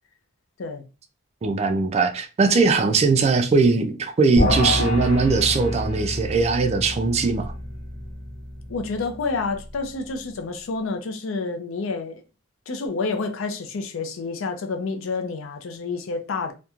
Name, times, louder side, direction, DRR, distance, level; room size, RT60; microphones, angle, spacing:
voice 1, 1.4-7.5, right 4 dB, 30° right, 0.3 m, -20 dB
sound 1, 4.4-9.9, left 1 dB, 30° left, 1.1 m, -28 dB
voice 2, 8.7-12.2 12.7-16.5, left 4 dB, 70° left, 0.5 m, -29 dB
2.9 x 2.1 x 2.3 m
head